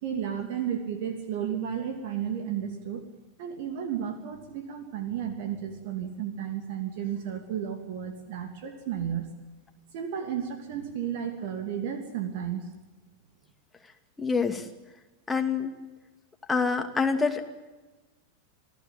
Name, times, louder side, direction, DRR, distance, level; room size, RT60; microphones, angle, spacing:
voice 1, 0.0-3.0 3.4-9.3 9.9-12.6, right 9 dB, 50° right, 6 dB, 2.9 m, -33 dB
voice 2, 14.2-14.6 15.3-15.7 16.5-17.4, left 5 dB, 10° left, 4 dB, 2.5 m, -26 dB
28.0 x 17.0 x 8.6 m, 1.2 s
figure-of-eight pair, 90°, 0 cm